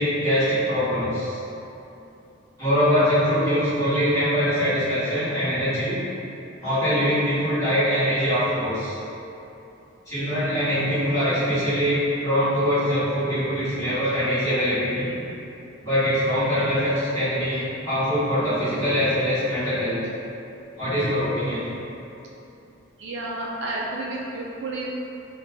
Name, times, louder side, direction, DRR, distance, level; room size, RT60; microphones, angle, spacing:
voice 1, 0.0-1.4 2.6-6.0 6.6-9.0 10.1-15.1 15.8-20.0 20.8-21.6, equal, 15° left, -15 dB, 1.2 m, -23 dB
voice 2, 23.0-24.9, right 2 dB, 60° right, -3 dB, 0.4 m, -31 dB
2.7 x 2.3 x 3.5 m, 2.8 s
head